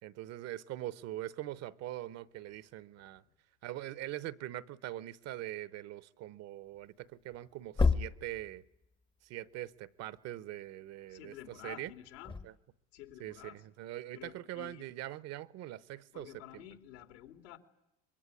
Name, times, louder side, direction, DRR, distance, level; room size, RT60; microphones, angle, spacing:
voice 1, 0.0-3.2 3.6-8.6 9.2-11.3 11.6-11.9 12.4-12.5 13.2-16.6, right 14 dB, 45° right, 17 dB, 0.9 m, -43 dB
sound 1, 7.3-7.4 7.7-8.8 11.9-12.5, left 4 dB, 15° left, 0.9 m, -30 dB
voice 2, 11.1-12.4 12.9-13.6 14.1-14.8 16.1-17.6, left 12 dB, 75° left, 7 dB, 2.9 m, -50 dB
25.0 x 22.0 x 9.9 m, 0.84 s
supercardioid pair, 115°, 34 cm